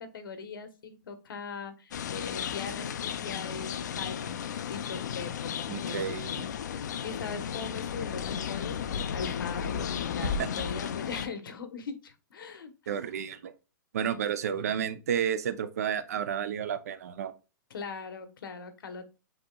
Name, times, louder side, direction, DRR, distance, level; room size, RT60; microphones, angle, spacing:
voice 1, 0.0-6.4 6.8-12.7 14.5-14.8 17.7-19.2, left 5 dB, 90° left, 1.0 m, -41 dB
sound 1, 1.9-11.3, left 8 dB, 55° left, 0.4 m, -34 dB
voice 2, 5.7-6.5 10.4-10.6 12.9-13.5 13.9-17.3, right 8 dB, 45° right, 0.5 m, -31 dB
7.9 x 2.8 x 2.3 m
hypercardioid pair, 180°, 11 cm